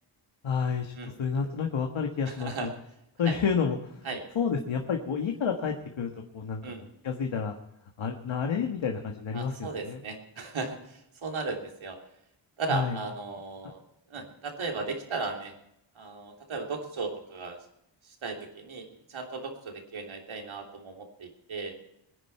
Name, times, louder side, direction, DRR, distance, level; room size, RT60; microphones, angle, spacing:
voice 1, 0.4-0.9 1.2-2.7 3.2-4.0 4.3-6.6 7.0-7.5 8.0-10.0 12.7-13.0, left 6 dB, 75° left, 3 dB, 1.6 m, -29 dB
voice 2, 2.3-2.7 3.2-3.4 4.0-4.2 6.6-6.8 9.3-12.0 12.6-13.8 14.1-15.5 15.9-17.6 18.1-21.7, right 4 dB, 90° right, 2 dB, 3.3 m, -36 dB
21.5 x 10.5 x 4.4 m, 0.79 s
wide cardioid pair, 135°, 47 cm